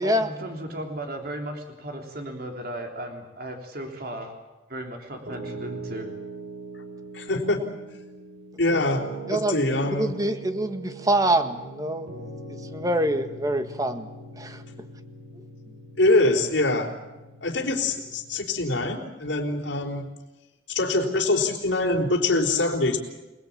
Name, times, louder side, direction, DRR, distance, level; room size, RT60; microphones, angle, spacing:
voice 1, 0.0-4.3 4.7-6.1, right 1 dB, 55° right, 3 dB, 3.5 m, -35 dB
Piano, 5.3-18.6, right 3 dB, 75° right, 5.5 m, -41 dB
voice 2, 7.1-7.6 8.6-10.1 16.0-16.9 17.4-20.0 20.7-23.0, left 2 dB, 75° left, -2 dB, 4.3 m, -24 dB
voice 3, 9.8-12.2 12.7-14.1 14.4-14.6, right 1 dB, 20° right, 8 dB, 1.7 m, -25 dB
28.5 x 19.5 x 8.7 m, 1.1 s
head